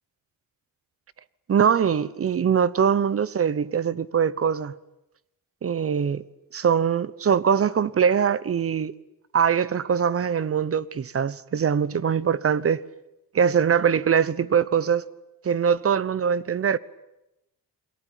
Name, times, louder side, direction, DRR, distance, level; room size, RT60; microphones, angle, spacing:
voice 1, 1.5-4.7 5.6-6.2 6.5-8.9 9.3-12.8 13.3-15.0 15.4-16.8, right 7 dB, 40° right, 1.0 m, -22 dB
29.0 x 22.5 x 9.2 m
cardioid pair, 130°, 34 cm